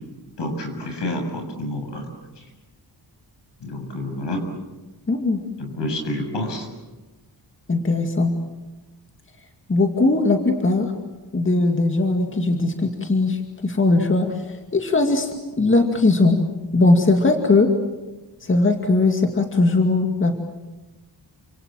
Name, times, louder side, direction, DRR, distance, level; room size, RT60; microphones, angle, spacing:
voice 1, 0.4-2.1 3.6-4.5 5.6-6.7, left 1 dB, 75° left, 4 dB, 7.3 m, -28 dB
voice 2, 5.1-5.4 7.7-8.4 9.7-10.9 11.3-14.4 14.7-15.3 15.6-16.4 16.7-17.7 18.4-20.4, left 3 dB, 30° left, 4 dB, 2.3 m, -19 dB
29.0 x 26.5 x 7.7 m, 1.1 s
wide cardioid pair, 150°, 43 cm